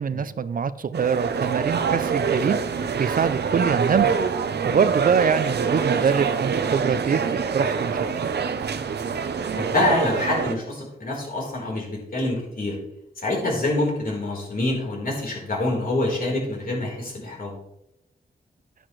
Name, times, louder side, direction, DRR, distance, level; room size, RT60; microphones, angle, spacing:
voice 1, 0.0-2.6 3.0-4.2 4.6-8.3, right 6 dB, 55° right, 15 dB, 0.5 m, -24 dB
sound 1, 0.9-10.6, right 6 dB, 80° right, 0.8 m, -25 dB
voice 2, 9.5-12.8 13.2-17.6, left 2 dB, 55° left, -2 dB, 4.2 m, -26 dB
11.0 x 10.0 x 3.2 m, 0.83 s
wide cardioid pair, 115°, 17 cm